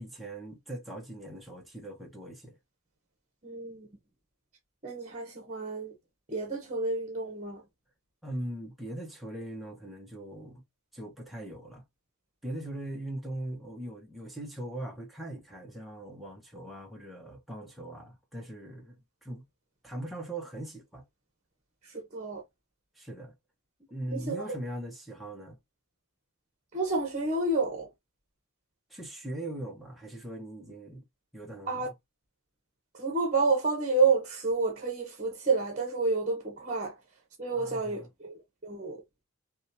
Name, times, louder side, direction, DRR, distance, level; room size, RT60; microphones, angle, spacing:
voice 1, 0.0-2.6 8.2-10.6 10.9-11.8 12.4-19.4 19.8-21.0 22.9-23.3 23.9-25.6 28.9-31.0 31.3-31.9 37.5-38.1, right 1 dB, ahead, 1.0 m, -40 dB
voice 2, 3.4-3.9 4.8-5.9 6.3-7.6 21.9-22.4 24.1-24.4 26.7-27.9 31.7-31.9 33.0-36.9 37.4-39.0, right 3 dB, 35° right, 1.2 m, -29 dB
6.2 x 2.4 x 2.9 m
head